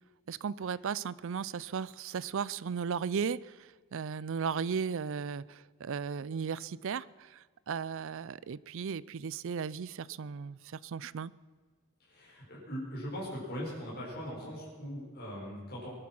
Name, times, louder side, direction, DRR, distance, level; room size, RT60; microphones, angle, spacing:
voice 1, 0.3-11.3, right 6 dB, 65° right, 20 dB, 0.4 m, -36 dB
voice 2, 12.0-16.0, equal, 50° left, -6 dB, 5.2 m, -40 dB
20.5 x 11.0 x 6.0 m, 1.5 s
head